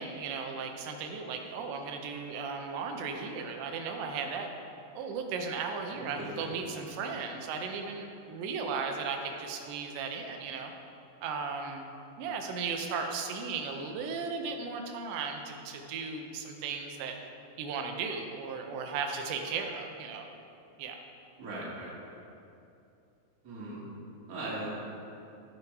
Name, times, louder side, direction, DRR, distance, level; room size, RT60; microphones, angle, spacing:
voice 1, 0.0-4.5 5.0-10.7 11.2-11.9 12.2-17.2 17.6-20.2 20.8-21.0, right 5 dB, 85° right, 4 dB, 3.0 m, -36 dB
voice 2, 5.9-6.5 21.4-21.9 23.4-23.8 24.3-24.7, right 1 dB, 30° right, -7 dB, 1.9 m, -39 dB
15.5 x 5.6 x 4.6 m, 2.7 s
omnidirectional pair, 4.9 m